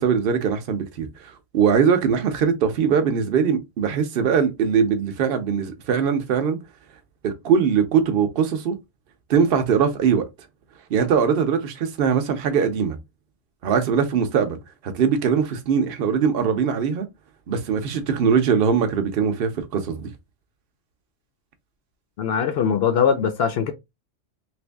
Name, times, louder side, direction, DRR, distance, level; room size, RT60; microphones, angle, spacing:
voice 1, 0.0-6.6 7.2-8.8 9.3-10.3 10.9-13.0 13.6-14.6 14.8-17.1 17.5-20.1, right 6 dB, 55° right, 0.8 m, -21 dB
voice 2, 22.2-23.7, left 7 dB, 65° left, 0.7 m, -21 dB
3.0 x 2.6 x 3.3 m
omnidirectional pair, 1.3 m